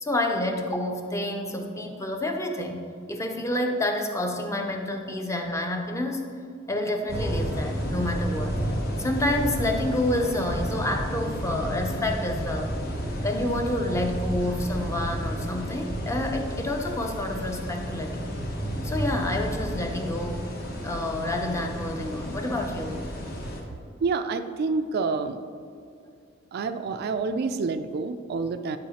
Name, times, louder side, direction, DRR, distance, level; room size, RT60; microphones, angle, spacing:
voice 1, 0.0-6.2 6.7-8.6 9.0-12.8 13.2-18.4 18.8-20.5 20.8-23.0, left 1 dB, 15° left, 3 dB, 0.5 m, -28 dB
sound 1, 7.1-23.6, equal, 50° left, 1.0 m, -31 dB
voice 2, 24.0-25.4 26.5-28.8, right 4 dB, 55° right, 9 dB, 0.3 m, -28 dB
10.0 x 4.8 x 2.9 m, 2.3 s
head